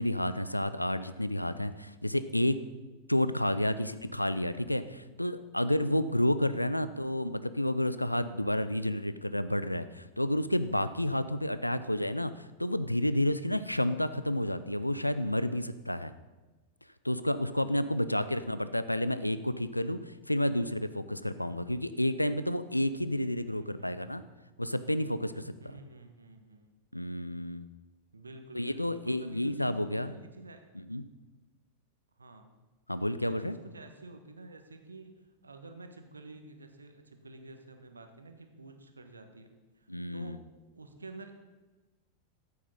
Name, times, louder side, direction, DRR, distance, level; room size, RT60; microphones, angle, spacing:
voice 1, 0.0-2.6 3.1-16.1 17.0-24.2 24.6-25.5 26.9-27.6 28.5-30.1 30.9-31.0 32.9-33.5 39.9-40.4, left 1 dB, 90° left, 13 dB, 0.5 m, -30 dB
voice 2, 17.8-18.6 23.5-24.3 25.6-26.7 28.1-30.8 32.2-32.5 33.3-39.5 39.8-40.4 40.7-41.3, right 2 dB, 75° right, 7 dB, 1.3 m, -50 dB
13.5 x 8.5 x 5.5 m, 1.2 s
figure-of-eight pair, 90°, 0 cm